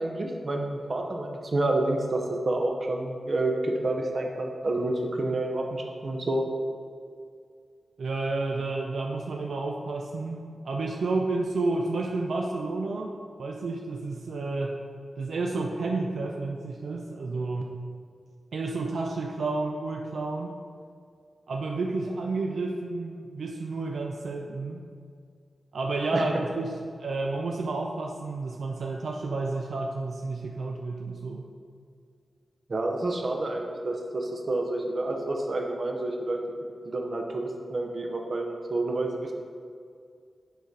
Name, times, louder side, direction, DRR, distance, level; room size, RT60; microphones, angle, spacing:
voice 1, 0.0-6.4 26.1-26.4 32.7-36.4 36.8-39.3, right 2 dB, 50° right, 2 dB, 0.8 m, -29 dB
voice 2, 8.0-13.1 13.4-14.8 15.2-17.8 18.5-20.6 21.5-24.8 25.7-31.5, right 3 dB, 85° right, 1 dB, 0.5 m, -31 dB
6.7 x 4.0 x 4.7 m, 2.2 s
wide cardioid pair, 110°, 0 cm